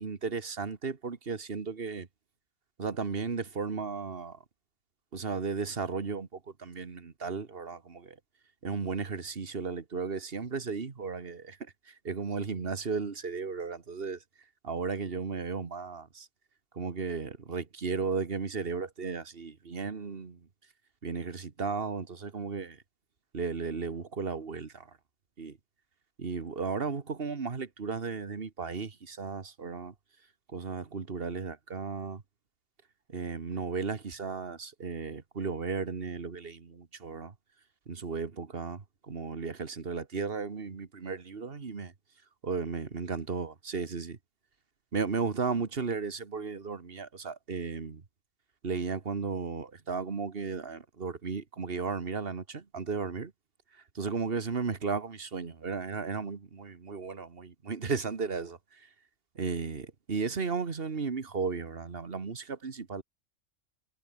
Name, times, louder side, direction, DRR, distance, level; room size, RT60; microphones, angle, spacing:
voice 1, 0.0-2.1 2.8-4.4 5.1-8.2 8.6-11.6 11.9-14.2 14.6-16.3 16.7-20.4 21.0-22.8 23.3-24.9 25.4-25.6 26.2-29.9 30.5-32.2 33.1-37.3 37.9-41.9 42.4-44.2 44.9-48.0 48.6-53.3 53.9-58.6 59.3-63.0, right 5 dB, 50° right, 1.8 m, -35 dB
omnidirectional pair, 1.3 m